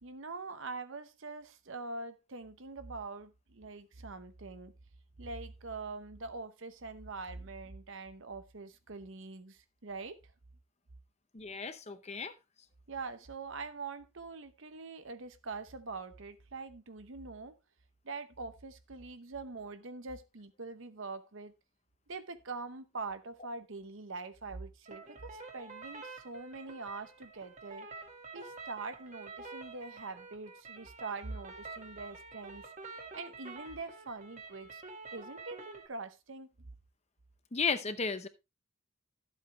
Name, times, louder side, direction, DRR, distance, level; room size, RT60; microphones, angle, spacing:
voice 1, 0.0-4.7 5.2-10.2 12.9-17.5 18.0-21.5 22.1-27.9 28.3-32.7 33.1-34.8 35.1-36.5, right 3 dB, 60° right, 0.9 m, -44 dB
voice 2, 11.3-12.3 37.5-38.3, left 5 dB, 30° left, 0.7 m, -34 dB
sound 1, 24.9-35.9, right 3 dB, 35° right, 1.6 m, -48 dB
12.5 x 8.0 x 3.0 m
head